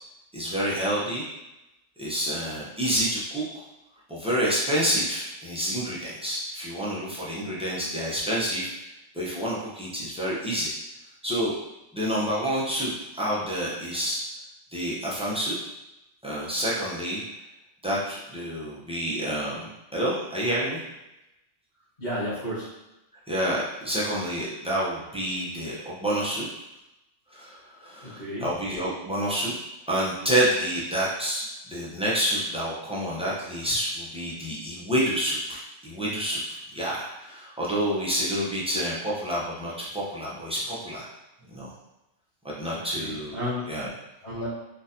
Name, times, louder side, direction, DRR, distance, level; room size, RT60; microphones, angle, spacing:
voice 1, 0.3-1.2 2.0-3.6 4.1-8.7 9.1-10.7 11.2-11.5 11.9-14.2 14.7-15.6 16.2-17.2 17.8-20.8 23.3-26.5 27.3-29.5 29.9-41.1 41.5-41.7 42.4-43.4 43.7-43.9, equal, 5° right, -7 dB, 0.5 m, -28 dB
voice 2, 22.0-22.7 28.0-28.5 42.7-43.7 44.2-44.5, left 1 dB, 35° left, -15 dB, 1.4 m, -32 dB
3.8 x 2.5 x 2.7 m, 0.92 s
omnidirectional pair, 1.3 m